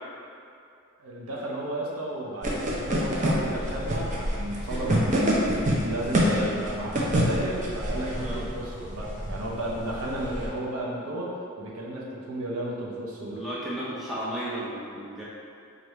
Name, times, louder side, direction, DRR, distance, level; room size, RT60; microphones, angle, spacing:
voice 1, 1.0-5.4 5.8-13.4, right 1 dB, 85° right, -3 dB, 0.7 m, -33 dB
sound 1, 2.4-10.5, equal, 35° right, 0.5 m, -27 dB
voice 2, 4.6-5.0 6.3-6.5 8.2-8.4 13.1-15.2, right 1 dB, ahead, -10 dB, 0.7 m, -35 dB
4.7 x 2.5 x 3.1 m, 2.5 s
head